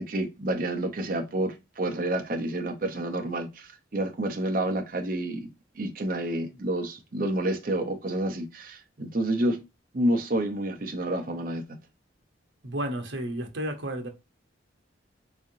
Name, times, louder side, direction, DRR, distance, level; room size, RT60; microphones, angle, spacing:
voice 1, 0.0-5.5 5.8-9.6 9.9-11.8, right 1 dB, 50° right, 0.6 m, -29 dB
voice 2, 12.6-14.1, right 1 dB, 80° right, 0.9 m, -32 dB
3.7 x 3.2 x 2.6 m
head